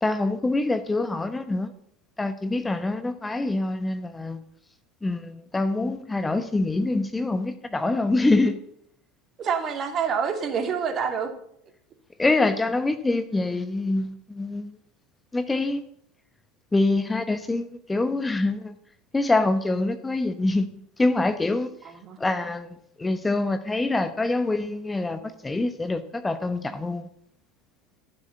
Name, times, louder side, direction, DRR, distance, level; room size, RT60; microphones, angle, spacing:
voice 1, 0.0-1.7 2.2-4.4 5.0-8.5 12.2-14.7 15.3-15.8 16.7-18.7 19.1-20.7 21.0-21.7 22.2-22.7 23.0-27.1, left 2 dB, 15° left, 1.0 m, -25 dB
voice 2, 9.4-11.3 21.8-22.2, right 6 dB, 35° right, 2.7 m, -27 dB
14.0 x 7.4 x 8.1 m
figure-of-eight pair, 75°, 0 cm